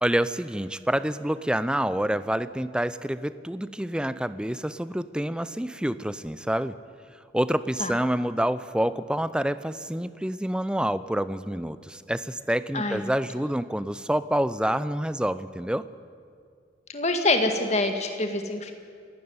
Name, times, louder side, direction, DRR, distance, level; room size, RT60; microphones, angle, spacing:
voice 1, 0.0-6.8 7.3-15.9, right 1 dB, 5° right, 14 dB, 0.5 m, -27 dB
voice 2, 16.9-18.7, left 2 dB, 35° left, 5 dB, 2.0 m, -25 dB
28.0 x 12.5 x 9.6 m, 2.2 s
head